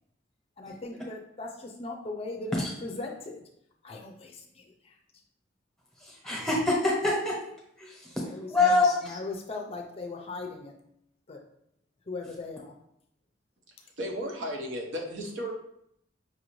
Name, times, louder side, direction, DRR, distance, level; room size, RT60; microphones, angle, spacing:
voice 1, 0.6-2.6 2.8-3.4 3.8-5.0 8.2-10.7 11.3-11.4 12.1-12.7, left 3 dB, 30° left, 2 dB, 0.4 m, -39 dB
voice 2, 6.0-7.4 7.8-9.2, left 2 dB, 5° left, -4 dB, 0.9 m, -26 dB
voice 3, 13.7-15.5, equal, 75° right, 1 dB, 0.8 m, -35 dB
5.4 x 2.5 x 3.1 m, 0.74 s
head